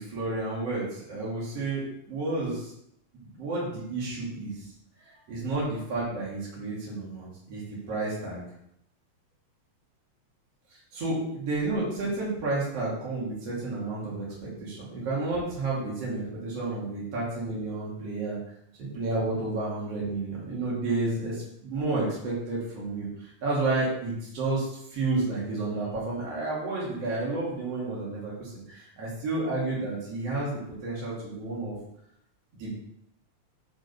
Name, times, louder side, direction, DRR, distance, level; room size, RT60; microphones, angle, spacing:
voice 1, 0.0-2.7 3.2-4.7 5.3-8.4 10.9-14.3 14.6-18.4 18.8-30.5 30.8-31.8 32.6-32.8, right 2 dB, 55° right, -6 dB, 3.8 m, -31 dB
6.8 x 5.2 x 6.9 m, 0.75 s
omnidirectional pair, 3.4 m